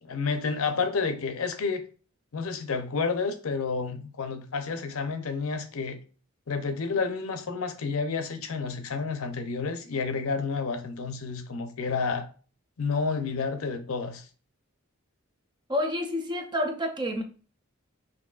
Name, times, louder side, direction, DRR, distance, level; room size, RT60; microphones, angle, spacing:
voice 1, 0.0-1.8 2.3-6.0 6.5-12.3 12.8-14.3, left 4 dB, 75° left, 0.6 m, -30 dB
voice 2, 15.7-17.2, left 1 dB, 20° right, 0.5 m, -29 dB
6.1 x 2.7 x 2.4 m
head